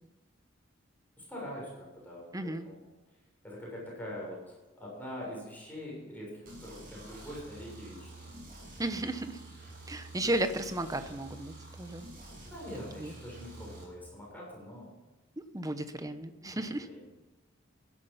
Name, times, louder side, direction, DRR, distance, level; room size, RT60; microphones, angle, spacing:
voice 1, 1.2-2.8 3.4-8.3 12.4-14.9 16.4-17.1, left 1 dB, 10° left, -4 dB, 7.0 m, -44 dB
voice 2, 2.3-2.7 8.8-9.4 9.9-12.1 13.0-13.1 15.4-16.9, right 1 dB, 20° right, 10 dB, 0.9 m, -34 dB
sound 1, 6.5-13.8, right 2 dB, 45° right, 6.8 m, -48 dB
17.5 x 11.0 x 5.7 m, 1.1 s
head